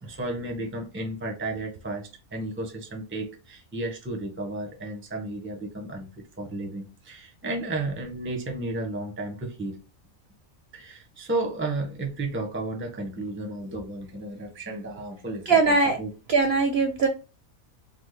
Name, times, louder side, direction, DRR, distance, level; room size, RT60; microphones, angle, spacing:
voice 1, 0.0-6.1 6.4-9.8 10.7-16.1, right 2 dB, 15° right, 0.4 m, -33 dB
voice 2, 15.5-16.0 16.3-17.1, right 4 dB, 65° right, 0.6 m, -20 dB
3.4 x 2.1 x 3.1 m
omnidirectional pair, 1.5 m